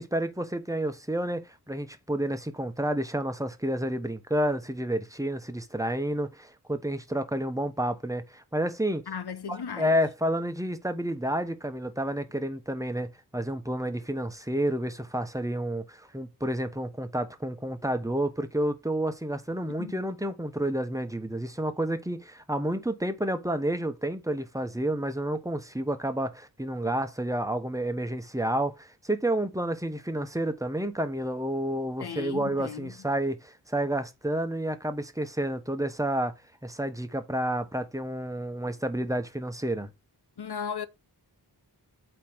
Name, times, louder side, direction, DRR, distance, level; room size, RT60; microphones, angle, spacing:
voice 1, 0.0-9.0 9.5-36.3 36.6-39.9, right 1 dB, 10° right, 1.0 m, -30 dB
voice 2, 9.1-10.0 19.8-20.0 32.0-33.0 40.4-40.9, left 7 dB, 85° left, 0.9 m, -36 dB
8.3 x 3.2 x 6.0 m
wide cardioid pair, 80°, 38 cm